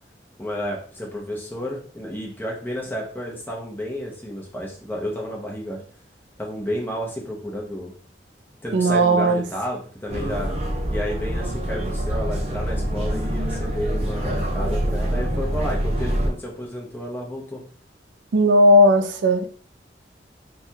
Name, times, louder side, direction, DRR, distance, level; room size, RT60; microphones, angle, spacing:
voice 1, 0.4-5.8 6.4-7.9 8.6-10.5 10.9-17.6, equal, 10° left, -2 dB, 0.7 m, -31 dB
voice 2, 8.7-9.4 18.3-19.5, equal, 85° right, 8 dB, 0.4 m, -16 dB
sound 1, 10.1-16.3, equal, 35° right, 0.6 m, -25 dB
3.2 x 2.2 x 2.7 m, 0.43 s
head